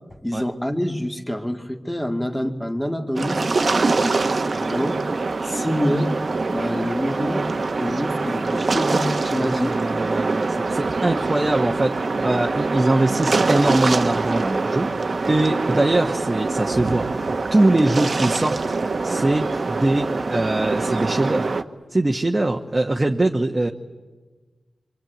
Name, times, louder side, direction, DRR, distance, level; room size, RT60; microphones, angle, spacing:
voice 1, 0.2-3.4 3.7-5.0 5.4-6.2 6.5-9.8, equal, 5° left, 5 dB, 2.1 m, -26 dB
sound 1, 3.1-21.6, right 3 dB, 50° right, 1.2 m, -24 dB
voice 2, 9.4-17.1 17.5-18.7 19.0-21.5 21.9-23.7, right 2 dB, 25° right, 2 dB, 1.3 m, -22 dB
25.5 x 24.5 x 9.2 m, 1.4 s
wide cardioid pair, 75°, 0 cm